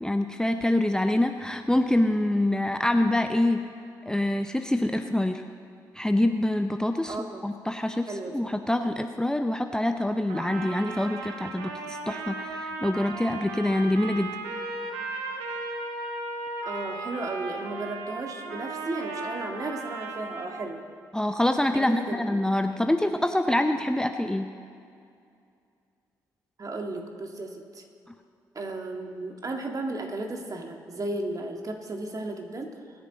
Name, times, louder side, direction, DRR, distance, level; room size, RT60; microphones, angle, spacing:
voice 1, 0.0-3.6 4.1-5.4 5.9-7.2 7.4-14.3 21.1-24.5, left 1 dB, 5° left, 7 dB, 0.7 m, -25 dB
voice 2, 7.1-7.4 8.1-8.5 16.6-20.8 21.7-22.4 26.6-27.8 28.5-32.7, right 2 dB, 40° right, 3 dB, 1.9 m, -34 dB
Trumpet, 10.3-20.7, right 3 dB, 85° right, 1.2 m, -36 dB
22.0 x 9.8 x 4.0 m, 2.4 s
hypercardioid pair, 45°, 9 cm